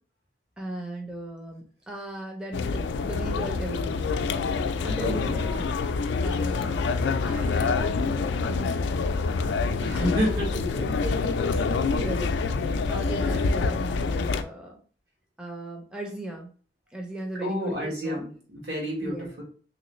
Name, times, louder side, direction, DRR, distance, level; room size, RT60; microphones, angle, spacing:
voice 1, 0.6-3.9 4.8-6.0 6.2-6.8 7.2-8.9 9.8-12.4 12.9-14.8 15.4-16.5 16.9-18.3 19.0-19.3, right 1 dB, 5° right, 0 dB, 0.5 m, -37 dB
sound 1, 2.5-14.4, left 4 dB, 90° left, 0.3 m, -26 dB
voice 2, 5.0-5.3 9.8-10.8 17.4-19.4, equal, 75° right, -2 dB, 1.5 m, -30 dB
3.2 x 3.0 x 3.0 m, 0.42 s
head